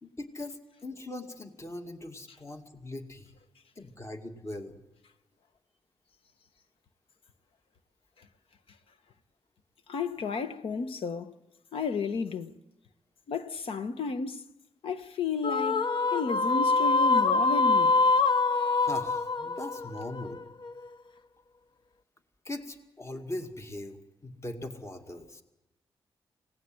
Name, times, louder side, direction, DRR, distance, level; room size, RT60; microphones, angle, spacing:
voice 1, 0.0-3.3 3.8-4.8 18.8-20.4 22.4-24.0 24.2-25.4, left 1 dB, 30° left, 2.3 m, -40 dB
voice 2, 9.9-11.4 11.7-12.6 13.3-14.4 14.8-18.0, left 5 dB, 75° left, 1.3 m, -32 dB
sound 1, 15.4-20.9, left 3 dB, 55° left, 0.8 m, -25 dB
25.5 x 18.5 x 7.9 m
cardioid pair, 60°, 9 cm